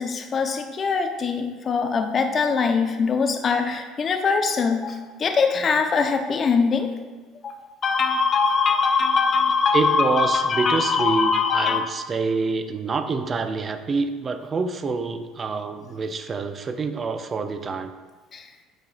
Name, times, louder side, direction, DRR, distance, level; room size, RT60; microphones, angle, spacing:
voice 1, 0.0-6.9 7.4-11.8 18.3-18.4, left 5 dB, 40° left, 5 dB, 0.8 m, -22 dB
voice 2, 9.7-17.9, right 4 dB, 35° right, 8 dB, 0.5 m, -26 dB
8.9 x 4.7 x 2.5 m, 1.3 s
hypercardioid pair, 70°, 0 cm